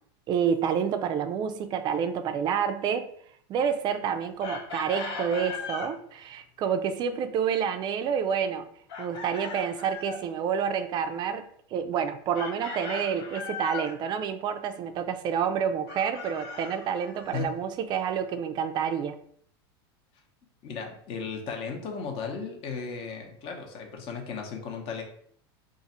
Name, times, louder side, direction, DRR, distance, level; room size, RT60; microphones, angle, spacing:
voice 1, 0.3-3.1 3.5-8.7 9.0-11.4 11.7-19.2, right 7 dB, 35° right, 9 dB, 0.4 m, -28 dB
Chicken rooster, 4.4-5.9 8.9-10.2 12.3-14.0 15.9-17.4, left 4 dB, 70° left, 1.2 m, -38 dB
voice 2, 20.6-25.0, left 5 dB, 45° left, 3 dB, 0.8 m, -35 dB
2.5 x 2.4 x 4.1 m, 0.64 s
supercardioid pair, 130°, 13 cm